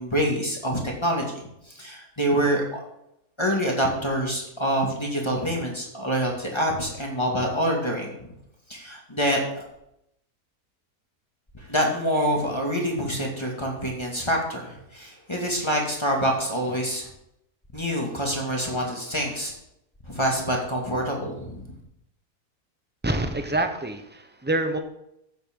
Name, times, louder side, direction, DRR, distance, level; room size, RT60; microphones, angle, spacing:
voice 1, 0.0-2.8 3.4-8.3 8.7-9.6 11.5-17.1 17.7-19.5 20.1-21.8, equal, 15° left, -1 dB, 2.1 m, -26 dB
voice 2, 23.0-24.8, right 2 dB, 10° right, 6 dB, 0.5 m, -26 dB
15.0 x 7.9 x 3.8 m, 0.80 s
omnidirectional pair, 1.6 m